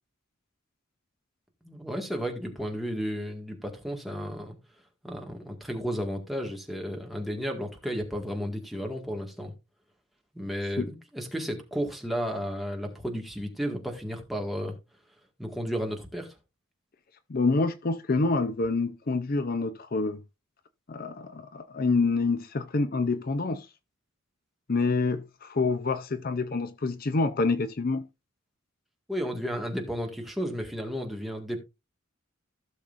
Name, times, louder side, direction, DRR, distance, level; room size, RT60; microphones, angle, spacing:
voice 1, 1.6-4.6 5.0-9.5 10.3-14.8 15.4-16.4 29.1-31.6, equal, ahead, 1.8 m, -33 dB
voice 2, 17.3-20.2 20.9-23.7 24.7-28.1, left 3 dB, 45° left, 0.5 m, -27 dB
16.0 x 6.5 x 2.5 m
head